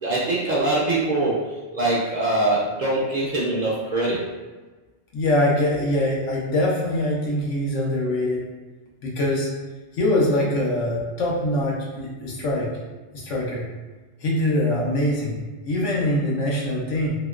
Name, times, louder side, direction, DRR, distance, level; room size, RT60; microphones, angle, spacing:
voice 1, 0.0-4.3, right 2 dB, 55° right, -6 dB, 0.5 m, -23 dB
voice 2, 5.1-8.4 9.0-9.5 9.9-12.7 13.1-13.6 14.2-17.2, left 1 dB, 85° left, -3 dB, 1.1 m, -23 dB
2.9 x 2.9 x 2.3 m, 1.3 s
omnidirectional pair, 1.2 m